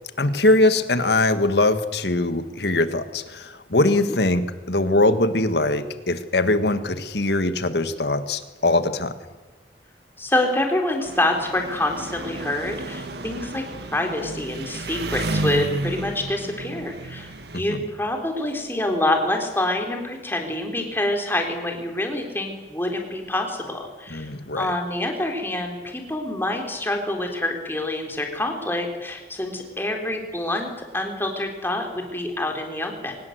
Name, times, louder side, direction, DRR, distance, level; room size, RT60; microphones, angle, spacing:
voice 1, 0.2-9.1 17.7-17.8 24.1-24.7, left 2 dB, 70° left, 10 dB, 1.7 m, -21 dB
voice 2, 10.2-13.7 13.9-33.2, left 1 dB, 15° left, 3 dB, 3.7 m, -26 dB
Engine, 11.0-17.6, right 2 dB, 70° right, 1.5 m, -32 dB
24.0 x 19.5 x 8.1 m, 1.2 s
head